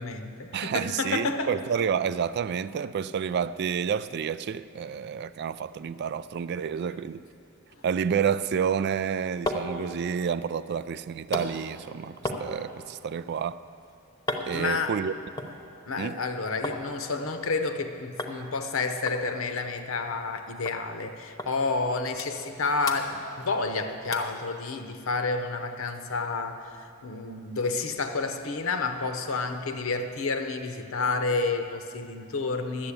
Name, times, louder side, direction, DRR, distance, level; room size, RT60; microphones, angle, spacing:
voice 1, 0.0-1.5 14.5-15.0 15.9-32.9, left 3 dB, 70° left, 7 dB, 0.8 m, -30 dB
voice 2, 0.5-7.2 7.8-13.6 14.4-15.1 16.0-16.2, right 7 dB, 50° right, 15 dB, 0.3 m, -29 dB
sound 1, 9.2-16.8 17.1-17.8 18.2-18.4 18.7-18.8 19.1-20.4 20.7-20.8 21.4-21.5 21.9-22.6 22.8-23.7 24.1-24.4 24.9-25.0, left 1 dB, 15° left, 0.9 m, -37 dB
12.0 x 7.8 x 8.3 m, 2.6 s
head